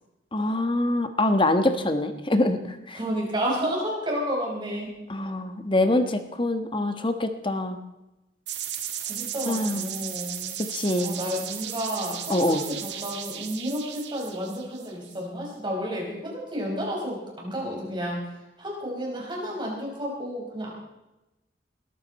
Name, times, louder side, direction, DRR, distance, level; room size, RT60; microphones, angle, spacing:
voice 1, 0.3-3.0 5.1-7.8 9.5-9.9 10.7-11.2 12.3-12.6, left 1 dB, 30° left, 8 dB, 1.3 m, -24 dB
voice 2, 2.9-5.0 9.0-10.6 11.0-18.2 18.6-20.7, equal, 25° right, -2 dB, 4.9 m, -31 dB
sound 1, 8.5-15.2, right 10 dB, 75° right, 1.8 m, -35 dB
21.0 x 13.5 x 4.2 m, 0.97 s
head